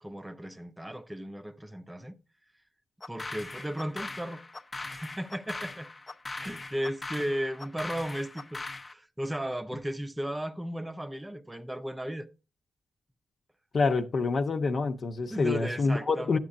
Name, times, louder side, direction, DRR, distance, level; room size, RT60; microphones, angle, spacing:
voice 1, 0.0-2.2 3.1-4.4 4.8-5.9 6.3-12.3 15.3-16.4, equal, 10° right, 0.7 m, -35 dB
sound 1, 3.0-8.9, left 2 dB, 30° left, 0.7 m, -40 dB
voice 2, 13.7-16.4, left 4 dB, 55° left, 1.0 m, -27 dB
11.0 x 7.5 x 2.7 m
cardioid pair, 65°, 0 cm